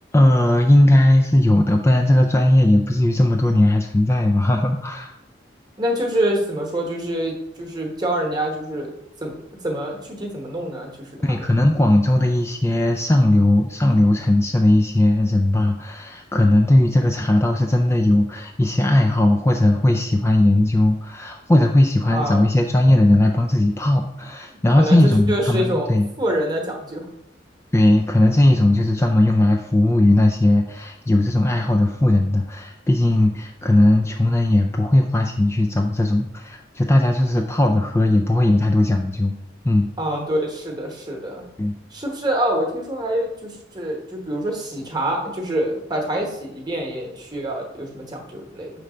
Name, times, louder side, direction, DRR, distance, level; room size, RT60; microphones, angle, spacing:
voice 1, 0.1-5.1 11.2-26.1 27.7-39.3 39.6-39.9 41.6-41.7, left 1 dB, 15° left, 3 dB, 0.3 m, -17 dB
voice 2, 5.8-8.9 9.2-9.3 9.6-11.5 22.1-22.4 24.5-27.1 40.0-41.4 41.9-48.7, right 1 dB, 20° right, 1 dB, 1.1 m, -26 dB
6.6 x 3.3 x 4.9 m, 0.85 s
head